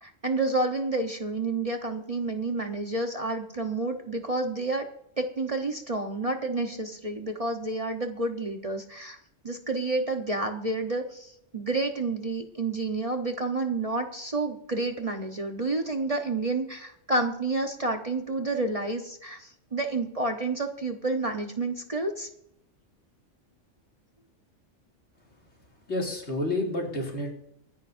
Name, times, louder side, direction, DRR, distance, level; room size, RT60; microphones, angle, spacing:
voice 1, 0.0-4.8 5.2-9.2 9.4-22.3, right 2 dB, 30° right, 4 dB, 1.1 m, -29 dB
voice 2, 25.9-27.3, left 1 dB, 65° left, -1 dB, 3.2 m, -29 dB
24.0 x 10.0 x 2.7 m, 0.72 s
omnidirectional pair, 1.2 m